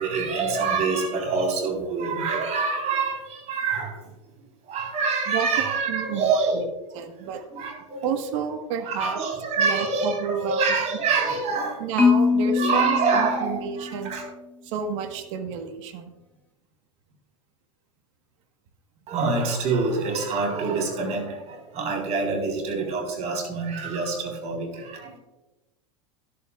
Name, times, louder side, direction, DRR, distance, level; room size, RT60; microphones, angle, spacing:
voice 1, 0.0-4.0 4.7-6.6 7.5-8.2 8.8-11.8 12.4-14.3 19.1-25.1, right 4 dB, 40° right, 3 dB, 3.8 m, -26 dB
voice 2, 5.9-6.6 6.9-7.4 8.0-9.2 9.6-10.6 11.8-14.2 14.6-16.1, right 7 dB, 65° right, 6 dB, 1.4 m, -30 dB
Marimba xylophone, 12.0-14.2, left 5 dB, 10° left, 0.8 m, -23 dB
13.5 x 11.5 x 2.4 m, 1.0 s
hypercardioid pair, 115°, 17 cm